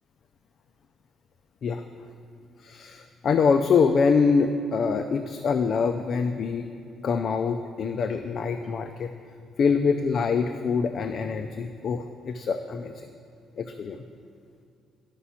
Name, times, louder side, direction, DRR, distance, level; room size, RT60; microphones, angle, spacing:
voice 1, 2.6-6.7 7.0-9.1 9.6-12.9 13.6-14.0, left 5 dB, 45° left, 7 dB, 0.4 m, -24 dB
11.5 x 5.9 x 5.6 m, 2.4 s
cardioid pair, 155°, 0 cm